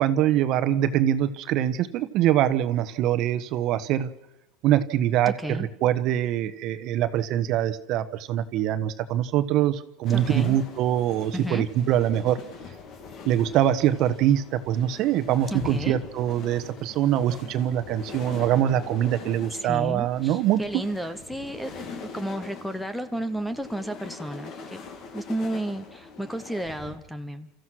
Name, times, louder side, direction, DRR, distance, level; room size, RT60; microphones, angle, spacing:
voice 1, 0.0-4.1 4.6-12.4 13.2-20.6, right 11 dB, 45° right, 11 dB, 1.2 m, -24 dB
voice 2, 5.3-5.7 10.1-10.6 11.3-11.7 15.5-16.0 19.5-24.8 25.1-27.5, right 1 dB, ahead, 12 dB, 1.0 m, -32 dB
sound 1, 10.0-27.0, left 5 dB, 40° left, 2.5 m, -42 dB
30.0 x 14.5 x 6.3 m, 0.96 s
supercardioid pair, 150°, 0 cm